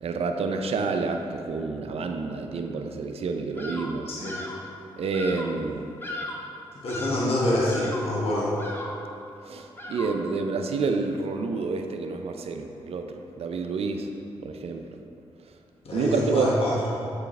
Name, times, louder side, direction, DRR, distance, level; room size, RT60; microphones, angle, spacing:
voice 1, 0.0-4.1 5.0-5.9 9.4-14.1 14.4-15.0 15.9-16.5, right 4 dB, 65° right, 5 dB, 0.5 m, -29 dB
Bird vocalization bird call bird song, 3.6-4.0 4.2-4.7 5.1-5.6 6.0-6.5 6.9-7.3 7.7-8.2 8.6-9.1 9.8-10.3, left 1 dB, 20° left, 1.0 m, -37 dB
voice 2, 4.1-4.4 6.7-8.6 15.8-16.7, left 1 dB, 60° left, -7 dB, 1.5 m, -26 dB
6.8 x 5.0 x 3.3 m, 2.7 s
supercardioid pair, 45°, 11 cm